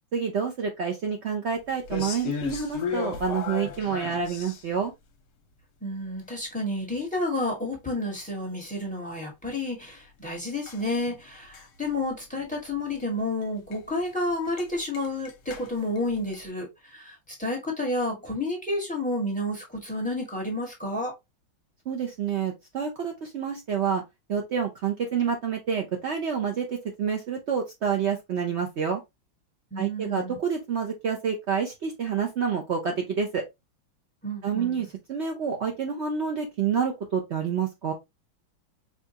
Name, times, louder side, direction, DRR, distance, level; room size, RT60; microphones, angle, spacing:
voice 1, 0.1-4.9 21.9-24.0 24.3-29.0 29.8-33.4 34.4-37.9, right 6 dB, 85° right, 0.5 m, -28 dB
sound 1, 1.8-4.8 10.7-11.9 12.2-12.5 12.7-12.9 13.4-13.5 13.7-13.8 14.1-14.2 14.5-16.5, left 6 dB, 60° left, 1.1 m, -35 dB
voice 2, 5.8-21.1 29.7-30.4 34.2-34.9, left 1 dB, 5° left, 1.1 m, -30 dB
4.8 x 2.5 x 2.7 m
omnidirectional pair, 2.1 m